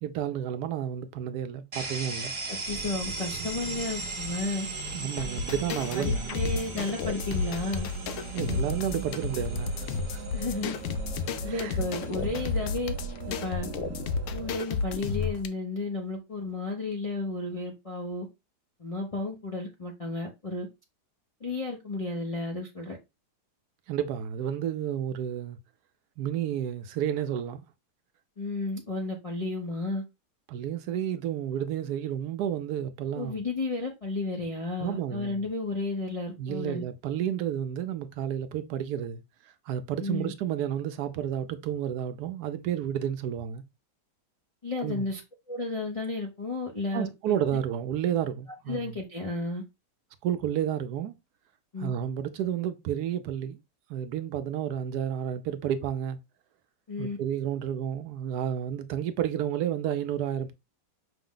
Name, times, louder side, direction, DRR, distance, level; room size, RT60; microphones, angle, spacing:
voice 1, 0.0-2.3 4.9-6.3 8.3-10.2 11.5-11.7 23.9-25.6 26.2-27.6 30.5-33.4 34.8-35.5 36.4-39.2 39.7-43.6 44.8-45.1 46.9-49.0 50.2-51.1 51.8-53.6 53.9-56.2 57.0-60.5, right 10 dB, 75° right, 1.1 m, -31 dB
sound 1, 1.7-15.4, right 3 dB, 30° right, 0.5 m, -40 dB
voice 2, 2.5-4.7 6.0-7.9 10.3-10.8 11.4-13.0 13.3-13.7 14.3-18.3 18.8-20.7 21.4-23.0 28.4-30.0 33.1-36.8 40.0-40.3 44.6-45.2 45.5-47.3 48.7-49.6 51.7-51.9 56.9-57.2, left 3 dB, 50° left, 0.4 m, -33 dB
sound 2, 2.7-14.6, right 5 dB, 90° right, 1.3 m, -41 dB
sound 3, 5.2-15.5, left 4 dB, 75° left, 0.7 m, -32 dB
5.7 x 2.1 x 3.7 m
omnidirectional pair, 1.8 m